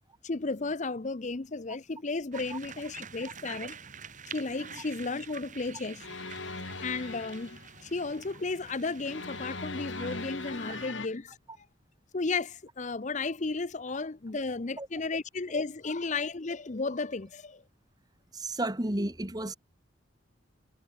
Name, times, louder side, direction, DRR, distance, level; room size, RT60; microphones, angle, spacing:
voice 1, 0.2-3.8 4.3-6.1 6.8-11.7 12.1-17.6, left 3 dB, 40° left, 0.7 m, -34 dB
sound 1, 2.3-10.9, right 6 dB, 40° right, 6.7 m, -47 dB
sound 2, 6.0-7.7 9.0-11.1, left 3 dB, 80° left, 4.5 m, -39 dB
voice 2, 18.3-19.6, right 1 dB, 20° right, 2.0 m, -32 dB
head